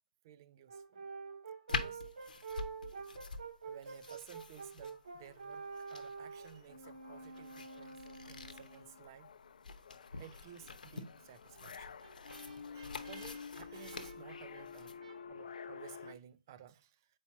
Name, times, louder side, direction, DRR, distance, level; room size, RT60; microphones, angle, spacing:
voice 1, 0.2-1.0 1.7-2.3 3.6-9.3 10.2-12.0 12.7-15.0 15.3-17.2, right 10 dB, 25° right, 0.3 m, -56 dB
Brass instrument, 0.7-9.0 11.5-15.2, right 5 dB, 60° right, 1.2 m, -48 dB
sound 1, 1.7-15.0, left 4 dB, 80° left, 0.8 m, -46 dB
sound 2, 4.2-4.3 4.6-16.1, left 6 dB, 60° left, 0.4 m, -51 dB
7.2 x 4.6 x 2.8 m
hypercardioid pair, 165°, 4 cm